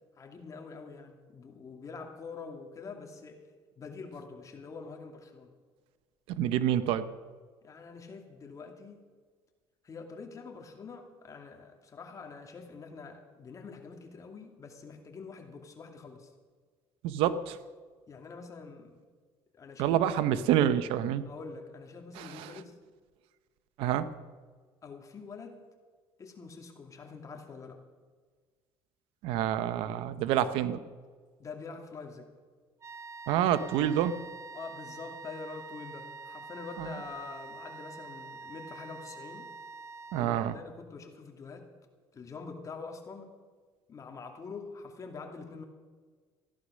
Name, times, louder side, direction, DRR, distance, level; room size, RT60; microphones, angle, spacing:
voice 1, 0.2-3.4 3.8-5.5 7.6-9.1 9.8-16.3 18.1-19.0 19.5-20.0 21.2-22.8 24.8-25.6 26.2-27.8 31.4-32.3 34.5-39.5 40.1-41.7 42.1-43.3 43.9-45.6, left 4 dB, 35° left, 3 dB, 2.5 m, -45 dB
voice 2, 6.4-7.0 17.0-17.6 19.8-21.2 22.2-22.5 23.8-24.1 29.2-30.8 33.3-34.1 36.8-36.9 40.1-40.5, right 11 dB, 80° right, 14 dB, 0.8 m, -27 dB
sound 1, 32.8-40.7, right 4 dB, 35° right, 1.0 m, -46 dB
15.0 x 11.0 x 6.4 m, 1.5 s
cardioid pair, 95°, 9 cm